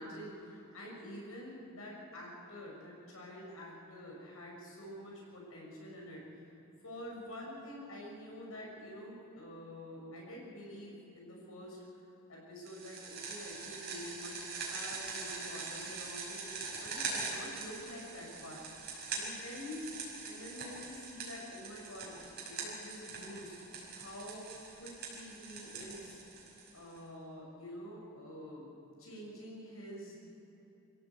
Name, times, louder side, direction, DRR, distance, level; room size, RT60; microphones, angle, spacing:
voice 1, 0.0-6.5 6.8-11.8 12.3-19.9 20.2-23.6 23.9-26.2 26.7-30.2, left 1 dB, 75° left, -2 dB, 6.6 m, -47 dB
sound 1, 12.7-27.0, right 4 dB, 45° right, 5.7 m, -43 dB
25.0 x 16.0 x 8.4 m, 3.0 s
head